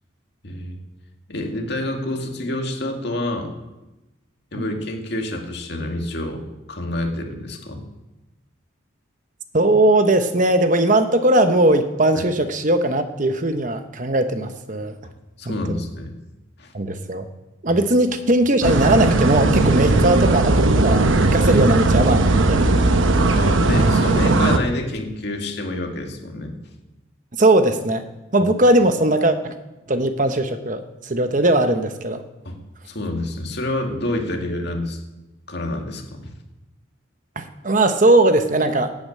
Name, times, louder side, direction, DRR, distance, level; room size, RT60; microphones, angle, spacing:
voice 1, 0.4-0.8 1.3-3.5 4.5-7.8 12.1-12.2 15.4-16.1 16.6-16.7 17.7-17.9 21.4-21.6 23.3-26.6 28.4-28.5 32.4-32.6 32.8-35.0 35.5-36.3, left 1 dB, 55° left, 2 dB, 2.2 m, -28 dB
voice 2, 9.5-15.0 15.5-15.8 16.7-17.3 17.6-21.1 21.3-22.6 27.4-28.0 28.3-29.5 29.9-32.2 37.4-38.9, right 1 dB, 40° right, 8 dB, 0.9 m, -19 dB
sound 1, 18.6-24.6, right 2 dB, 75° right, 0.9 m, -17 dB
12.0 x 8.7 x 8.7 m, 1.0 s
head